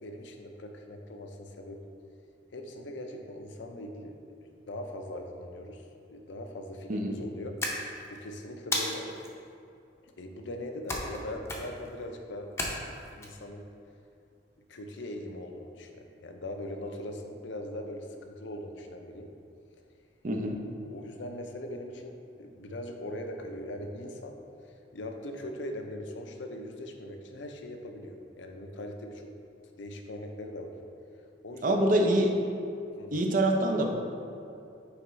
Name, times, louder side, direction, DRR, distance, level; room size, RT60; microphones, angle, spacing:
voice 1, 0.0-1.8 2.5-4.2 4.7-7.6 8.1-9.1 10.0-12.5 12.9-13.7 14.7-19.3 20.8-24.4 24.9-29.3 29.8-30.7 31.4-32.2 33.0-33.2, left 1 dB, 80° left, 4 dB, 0.6 m, -40 dB
voice 2, 6.9-7.2 20.2-20.6 31.6-32.3 33.1-33.9, right 1 dB, 45° right, 3 dB, 0.6 m, -25 dB
sound 1, 7.6-8.2 8.7-9.3 10.9-11.2 11.5-11.9 12.6-13.3, left 1 dB, 15° left, 0.6 m, -33 dB
9.4 x 3.5 x 3.1 m, 2.5 s
head